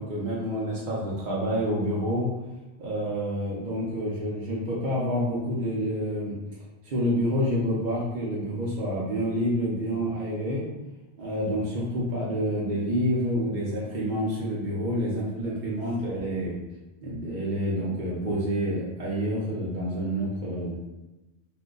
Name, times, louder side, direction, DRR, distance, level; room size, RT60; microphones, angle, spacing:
voice 1, 0.0-2.3 2.8-6.4 6.8-10.6 11.2-16.5 17.0-20.8, equal, 55° right, -6 dB, 0.7 m, -28 dB
2.5 x 2.2 x 3.7 m, 1.1 s
omnidirectional pair, 1.1 m